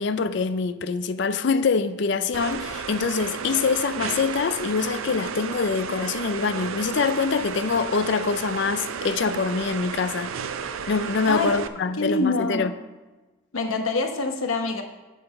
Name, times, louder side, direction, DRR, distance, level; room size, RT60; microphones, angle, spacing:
voice 1, 0.0-10.3 10.9-12.7, left 5 dB, 55° left, 0.4 m, -25 dB
sound 1, 2.3-11.7, right 6 dB, 80° right, 0.5 m, -33 dB
voice 2, 12.0-12.7 13.5-14.8, left 3 dB, 80° left, 1.0 m, -25 dB
7.8 x 6.3 x 5.6 m
head